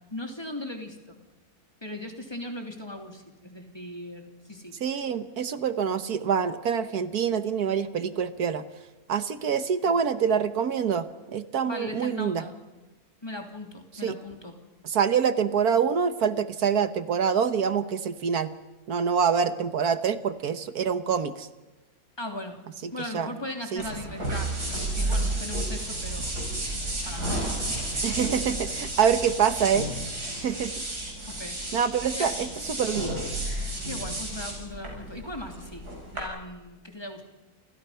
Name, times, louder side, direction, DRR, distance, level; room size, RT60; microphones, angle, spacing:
voice 1, 0.1-1.2 1.8-4.8 9.9-10.0 11.6-12.6 13.2-14.6 22.2-22.6 22.9-26.3 27.0-27.4 31.3-31.6 32.2-32.3 33.8-37.2, left 1 dB, 15° left, 3 dB, 3.1 m, -38 dB
voice 2, 4.8-8.6 9.1-11.1 11.3-12.4 14.0-14.1 14.8-18.5 18.9-21.5 22.8-23.3 23.7-23.8 28.0-30.0 30.4-30.7 31.7-33.2, right 7 dB, 75° right, 11 dB, 1.6 m, -26 dB
sound 1, 23.8-36.2, right 1 dB, 90° right, 7.2 m, -32 dB
29.5 x 28.0 x 5.7 m, 1.1 s
omnidirectional pair, 1.6 m